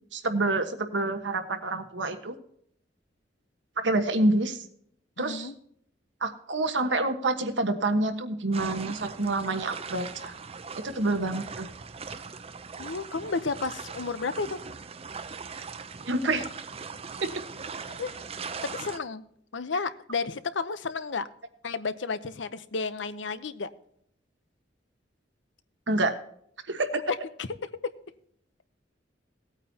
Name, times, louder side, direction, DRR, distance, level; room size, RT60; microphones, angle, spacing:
voice 1, 0.1-2.3 3.8-4.6 5.2-5.5 6.2-10.3 10.8-11.7 16.1-16.4 17.2-17.3 25.9-26.1 26.7-26.9, right 2 dB, 75° right, 8 dB, 1.3 m, -27 dB
voice 2, 5.2-5.5 12.8-14.6 17.9-19.2 19.5-21.3 21.6-23.7 26.9-27.5, left 4 dB, 80° left, 13 dB, 0.8 m, -32 dB
sound 1, 8.5-19.0, right 5 dB, 35° right, 0.6 m, -40 dB
17.5 x 9.0 x 2.8 m, 0.68 s
head